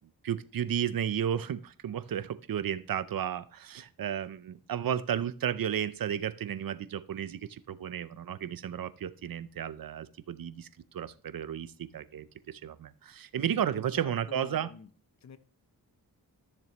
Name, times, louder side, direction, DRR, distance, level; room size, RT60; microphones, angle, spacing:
voice 1, 0.2-14.7, right 9 dB, 65° right, 0.6 m, -33 dB
voice 2, 13.5-14.9 15.2-15.4, left 6 dB, 45° left, 0.7 m, -49 dB
13.5 x 6.9 x 3.0 m
cardioid pair, 85°, 37 cm